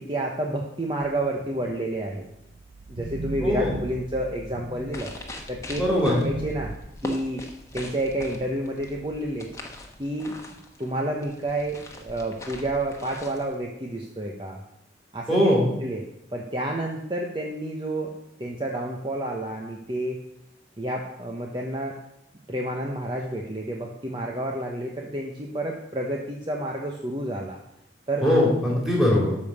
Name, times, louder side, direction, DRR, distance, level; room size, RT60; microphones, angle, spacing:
voice 1, 0.0-2.2 2.9-5.1 5.5-6.7 7.0-7.4 7.7-9.5 10.0-14.6 15.1-15.4 15.8-16.0 16.3-18.1 18.4-20.2 20.8-22.0 22.5-27.6 28.1-28.3 28.7-28.8, right 1 dB, 25° right, 0 dB, 1.0 m, -30 dB
sound 1, 1.0-5.3 5.8-6.8, right 3 dB, 85° right, 0.7 m, -37 dB
voice 2, 3.4-3.7 5.7-6.1 15.3-15.7 28.2-29.4, left 1 dB, ahead, -4 dB, 4.0 m, -21 dB
sound 2, 4.7-13.5, left 1 dB, 15° left, 1.2 m, -41 dB
13.0 x 5.4 x 6.8 m, 0.82 s
head